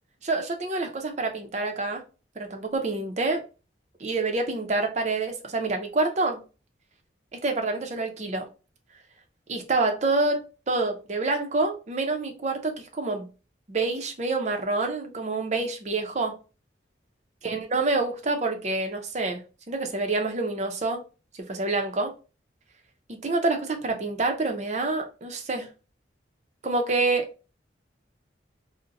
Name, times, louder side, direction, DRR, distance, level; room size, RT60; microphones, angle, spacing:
voice 1, 0.2-2.0 2.4-3.4 4.0-6.4 7.3-8.5 9.5-13.3 13.7-16.3 17.4-21.0 21.3-22.1 23.1-25.7 26.6-27.3, right 3 dB, 40° right, 0.5 m, -27 dB
2.5 x 2.1 x 3.9 m
head